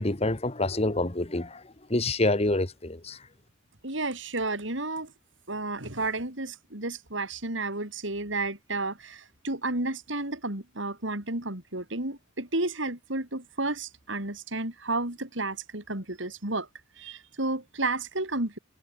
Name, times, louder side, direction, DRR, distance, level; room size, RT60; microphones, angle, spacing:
voice 1, 0.0-1.6 1.9-3.2, left 2 dB, 30° left, 1.5 m, -27 dB
voice 2, 3.8-5.1 5.5-16.7 17.0-18.6, right 2 dB, 70° right, 4.7 m, -32 dB
head